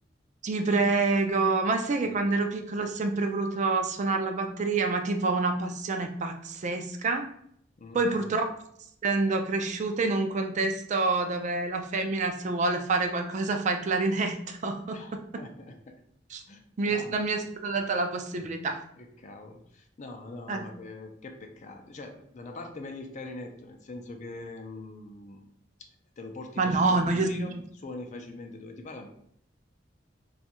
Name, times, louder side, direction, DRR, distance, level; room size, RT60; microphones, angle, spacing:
voice 1, 0.4-7.3 7.9-8.4 9.0-15.2 16.3-16.4 16.8-18.8 20.5-20.7 26.6-27.5, right 3 dB, 40° right, 5 dB, 0.4 m, -27 dB
voice 2, 2.0-2.5 7.8-8.4 14.9-16.0 16.5-17.2 19.0-25.4 26.2-29.1, left 2 dB, 40° left, 4 dB, 0.5 m, -43 dB
2.6 x 2.4 x 4.1 m, 0.67 s
head